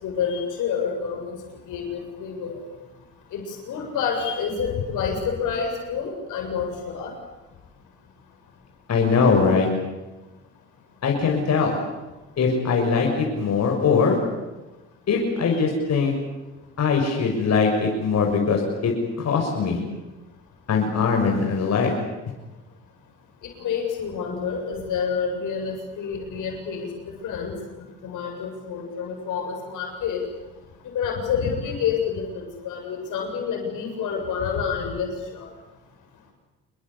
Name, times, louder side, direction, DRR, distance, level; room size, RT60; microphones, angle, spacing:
voice 1, 0.0-1.4 1.7-2.6 3.3-7.1 23.6-26.9 27.2-27.5 28.0-30.2 30.9-35.5, left 6 dB, 70° left, 2 dB, 7.4 m, -28 dB
voice 2, 8.9-9.7 11.0-11.8 12.4-14.2 15.1-16.1 16.8-19.8 20.7-22.0, left 5 dB, 55° left, 1 dB, 6.7 m, -21 dB
27.5 x 21.5 x 8.5 m, 1.1 s
supercardioid pair, 75°, 32 cm